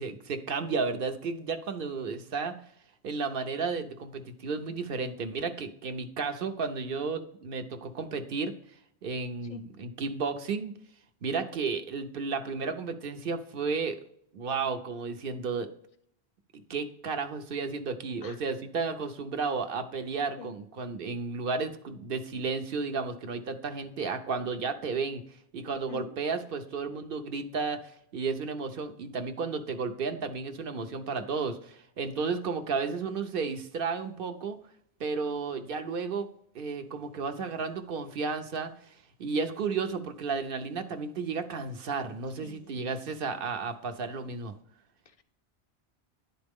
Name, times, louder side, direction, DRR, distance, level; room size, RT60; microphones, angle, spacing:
voice 1, 0.0-2.6 3.0-8.5 9.0-10.7 11.2-14.0 14.3-15.7 16.5-25.2 25.5-34.6 35.0-36.3 36.5-44.5, right 4 dB, 60° right, 7 dB, 0.8 m, -33 dB
voice 2, 42.4-42.8 45.1-45.2, left 7 dB, 50° left, 10 dB, 0.4 m, -45 dB
10.5 x 4.3 x 3.5 m, 0.69 s
omnidirectional pair, 1.1 m